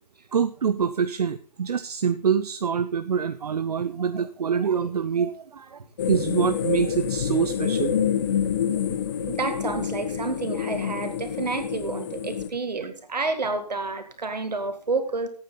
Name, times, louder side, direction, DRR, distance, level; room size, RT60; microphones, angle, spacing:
voice 1, 0.3-5.8 6.1-7.9 8.9-9.0, right 7 dB, 65° right, 12 dB, 0.6 m, -25 dB
sound 1, 6.0-12.5, left 8 dB, 30° left, 0.8 m, -27 dB
voice 2, 9.3-15.3, right 3 dB, 80° right, 7 dB, 2.2 m, -29 dB
14.5 x 8.7 x 4.0 m, 0.43 s
hypercardioid pair, 160°, 21 cm